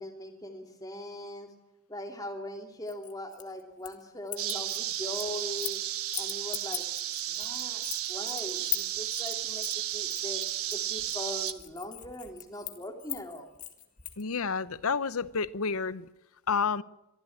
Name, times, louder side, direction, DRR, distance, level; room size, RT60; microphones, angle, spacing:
voice 1, 0.0-1.5 1.9-5.8 6.2-6.9 7.3-10.4 10.7-13.5, left 1 dB, 15° left, 2.8 m, -40 dB
sound 1, 2.9-4.0 4.3-5.8 6.1-14.2, left 12 dB, 35° left, 1.9 m, -39 dB
sound 2, 4.4-11.5, right 12 dB, 75° right, 1.2 m, -33 dB
voice 2, 14.2-16.1 16.5-16.8, left 5 dB, 75° left, 0.8 m, -29 dB
23.5 x 15.0 x 8.6 m
head